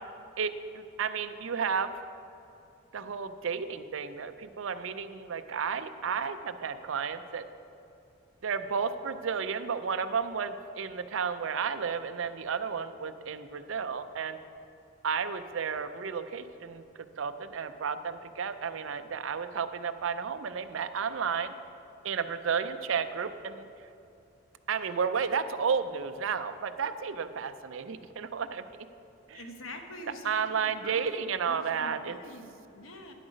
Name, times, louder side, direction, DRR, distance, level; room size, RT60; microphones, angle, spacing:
voice 1, 0.4-1.9 2.9-7.4 8.4-14.4 15.0-16.8 17.2-21.5 22.0-23.7 24.7-28.6 29.3-29.5 30.2-32.2, right 6 dB, 70° right, 11 dB, 0.5 m, -32 dB
voice 2, 29.3-33.1, left 1 dB, 75° left, 4 dB, 1.1 m, -46 dB
10.0 x 7.8 x 5.0 m, 2.7 s
head